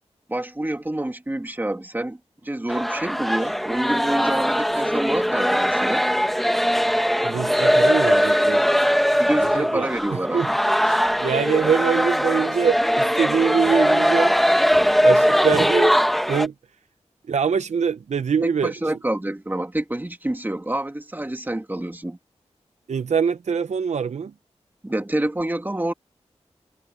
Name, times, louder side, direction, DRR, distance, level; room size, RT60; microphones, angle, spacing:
voice 1, 0.3-2.2 2.4-6.1 9.2-10.6 10.9-11.0 18.4-22.2 24.8-25.9, right 1 dB, 15° right, 1.8 m, -27 dB
sound 1, 2.7-16.5, equal, ahead, 1.1 m, -20 dB
voice 2, 7.2-8.7 9.3-9.9 10.3-10.5 11.2-14.3 15.0-15.9 16.3-16.5 17.3-18.7 22.9-24.3, right 6 dB, 80° right, 0.6 m, -23 dB
wide cardioid pair, 70°, 12 cm